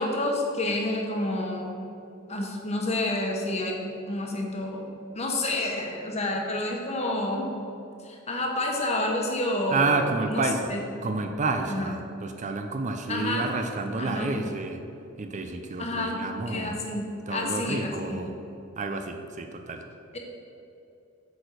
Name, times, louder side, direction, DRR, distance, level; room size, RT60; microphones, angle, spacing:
voice 1, 0.0-1.8 2.3-3.8 4.1-4.9 5.1-7.5 8.0-10.8 11.7-11.9 13.1-13.5 14.0-14.4 15.8-16.2 16.4-18.2 20.1-20.2, left 1 dB, 30° left, 0 dB, 1.2 m, -29 dB
voice 2, 9.7-10.7 11.0-14.8 15.2-16.8 17.3-18.3 18.8-19.8, right 3 dB, 35° right, 6 dB, 0.5 m, -29 dB
8.4 x 4.5 x 6.5 m, 2.7 s
head